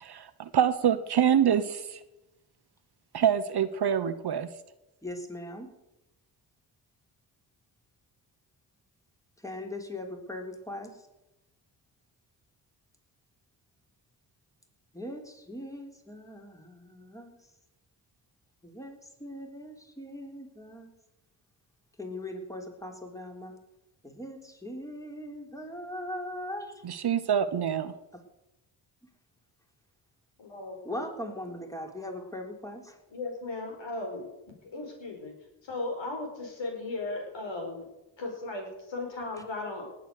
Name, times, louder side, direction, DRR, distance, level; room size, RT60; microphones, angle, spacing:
voice 1, 0.0-1.8 3.1-4.5 26.8-27.9, right 9 dB, 50° right, 1.0 m, -25 dB
voice 2, 5.0-5.7 9.4-11.1 14.9-17.4 18.6-20.9 22.0-23.5 24.0-26.7 28.1-28.2 30.8-33.0, left 1 dB, 5° left, 3.5 m, -40 dB
voice 3, 30.4-31.0 33.1-35.3 35.6-37.9 38.2-39.9, left 2 dB, 60° left, 5.1 m, -36 dB
18.5 x 8.3 x 6.7 m
supercardioid pair, 45°, 50 cm